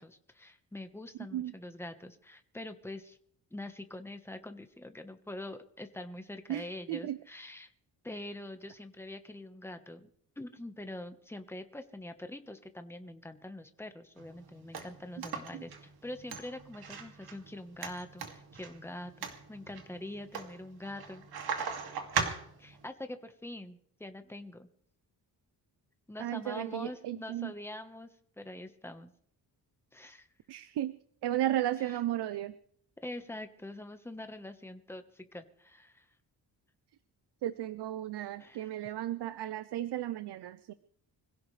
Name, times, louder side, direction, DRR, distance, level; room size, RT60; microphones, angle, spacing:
voice 1, 0.0-3.2 3.5-7.7 8.0-10.1 10.4-21.6 22.6-24.7 26.1-28.1 28.4-29.1 29.9-30.3 31.8-32.0 33.0-36.0 38.4-38.7, left 1 dB, 5° left, 7 dB, 1.3 m, -44 dB
voice 2, 6.5-7.2 15.5-15.6 26.2-27.5 30.5-30.9 31.2-32.5 37.4-40.7, right 13 dB, 85° right, 14 dB, 0.7 m, -34 dB
sound 1, 14.2-22.9, right 6 dB, 70° right, 2.6 m, -39 dB
25.0 x 16.5 x 3.3 m, 0.64 s
wide cardioid pair, 150°, 39 cm